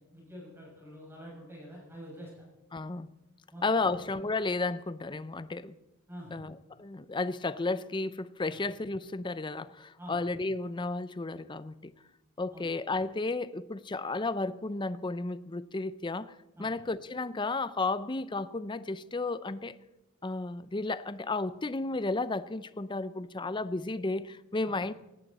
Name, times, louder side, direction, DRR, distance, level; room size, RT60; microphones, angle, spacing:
voice 1, 0.1-2.3 3.5-4.0 6.1-6.3 8.5-8.6 10.0-10.2 12.5-12.7 16.6-16.7 24.6-24.7, equal, 10° right, 6.3 m, -46 dB
voice 2, 2.7-3.1 3.6-5.8 6.3-11.9 12.4-19.8 20.2-24.9, left 3 dB, 20° left, 0.5 m, -33 dB
18.5 x 17.0 x 4.2 m
head